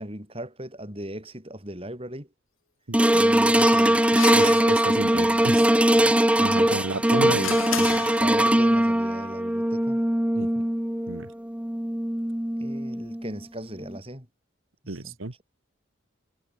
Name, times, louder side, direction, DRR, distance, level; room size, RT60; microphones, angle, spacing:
voice 1, 0.0-2.3 3.1-4.6 5.1-7.3 7.8-10.0 12.6-14.3 14.8-15.2, right 1 dB, 25° right, 5.5 m, -38 dB
sound 1, 2.9-13.3 13.9-14.0, right 1 dB, 5° right, 0.6 m, -21 dB
sound 2, 3.6-5.3 6.7-8.7, left 6 dB, 75° left, 3.2 m, -34 dB
voice 2, 4.3-5.7 6.4-8.0 10.3-10.5 11.1-11.3 14.9-15.4, right 2 dB, 75° right, 1.5 m, -32 dB
head